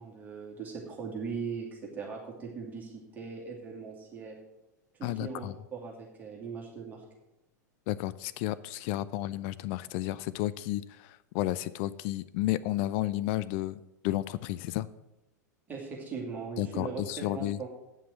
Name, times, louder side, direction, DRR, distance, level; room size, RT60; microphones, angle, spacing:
voice 1, 0.0-4.3 4.9-7.0 15.7-17.0 17.3-17.7, right 5 dB, 15° right, -2 dB, 2.4 m, -39 dB
voice 2, 5.0-5.5 7.9-14.9 16.6-17.6, left 15 dB, 40° left, 16 dB, 0.4 m, -32 dB
9.1 x 5.9 x 7.6 m, 0.91 s
figure-of-eight pair, 90°, 10 cm